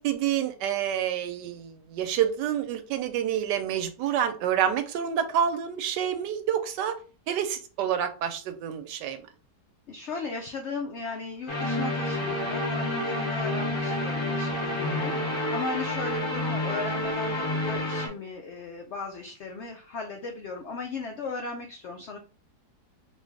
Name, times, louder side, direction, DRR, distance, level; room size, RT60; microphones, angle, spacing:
voice 1, 0.0-7.0 7.3-9.2, right 9 dB, 90° right, 9 dB, 1.2 m, -28 dB
voice 2, 9.9-22.2, left 4 dB, 85° left, 3 dB, 0.6 m, -36 dB
sound 1, 11.5-18.1, left 1 dB, 40° left, 0.4 m, -29 dB
3.2 x 2.5 x 3.4 m, 0.36 s
omnidirectional pair, 1.8 m